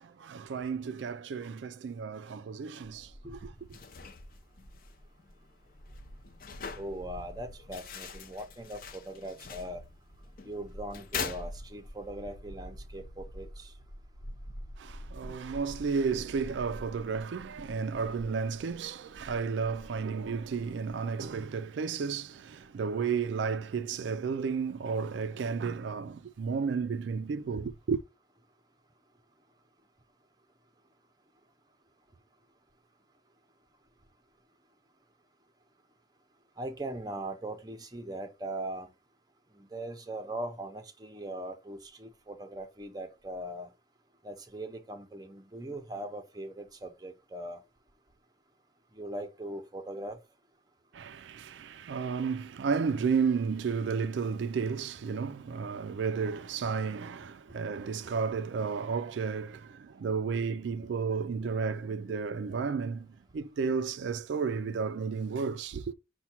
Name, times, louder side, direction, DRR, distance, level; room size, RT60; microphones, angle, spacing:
voice 1, 0.0-3.5 14.8-28.0 50.9-65.9, right 5 dB, 75° right, 0.4 m, -32 dB
sound 1, 2.8-21.4, equal, 85° left, 1.0 m, -48 dB
sound 2, 3.6-12.1, left 6 dB, 50° left, 0.6 m, -44 dB
voice 2, 6.8-9.8 10.4-13.7 36.6-38.9 39.5-43.7 44.2-47.6 48.9-50.2 61.4-61.5, right 1 dB, 20° right, 0.6 m, -40 dB
5.7 x 2.2 x 4.3 m
head